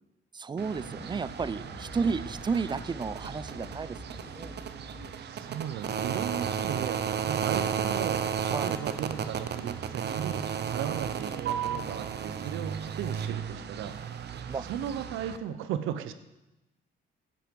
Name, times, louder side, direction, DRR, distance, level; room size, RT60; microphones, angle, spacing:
voice 1, 0.3-4.0 4.3-4.5 8.5-8.7 14.5-14.6, right 5 dB, 20° right, 17 dB, 0.4 m, -32 dB
sound 1, 0.6-15.4, right 8 dB, 60° right, 0.8 m, -34 dB
sound 2, 0.7-5.2, left 2 dB, 50° left, 3.1 m, -46 dB
voice 2, 5.2-14.0 14.6-16.1, right 9 dB, 90° right, 11 dB, 0.8 m, -36 dB
10.0 x 7.7 x 5.3 m, 0.98 s
cardioid pair, 90°, 20 cm